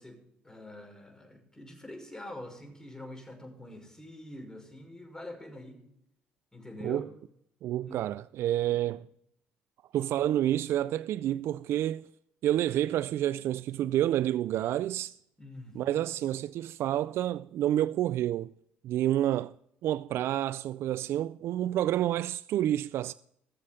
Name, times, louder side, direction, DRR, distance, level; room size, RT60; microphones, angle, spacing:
voice 1, 0.0-5.8 6.5-7.1 7.8-8.0 8.7-9.0 15.4-16.0, left 1 dB, 15° left, 5.7 m, -45 dB
voice 2, 7.6-9.1 9.9-12.1 12.4-15.1 15.7-18.5 18.8-19.5 19.8-23.1, right 12 dB, 65° right, 0.4 m, -29 dB
21.0 x 7.4 x 3.7 m
hypercardioid pair, 60°, 5 cm